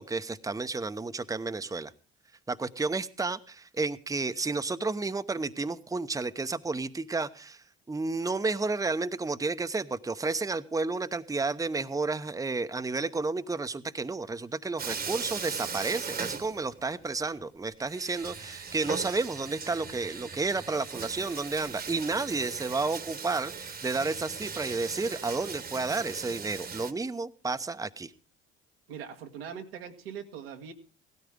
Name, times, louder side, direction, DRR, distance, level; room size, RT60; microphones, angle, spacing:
voice 1, 0.0-1.9 2.5-28.1, right 3 dB, 10° right, 10 dB, 0.9 m, -31 dB
Bathtub (filling or washing), 14.8-17.1 17.3-17.4 17.9-26.9, right 5 dB, 30° right, 1.3 m, -39 dB
voice 2, 28.9-30.7, right 7 dB, 85° right, 3 dB, 1.6 m, -41 dB
17.0 x 13.5 x 3.6 m, 0.36 s
hypercardioid pair, 55°, 29 cm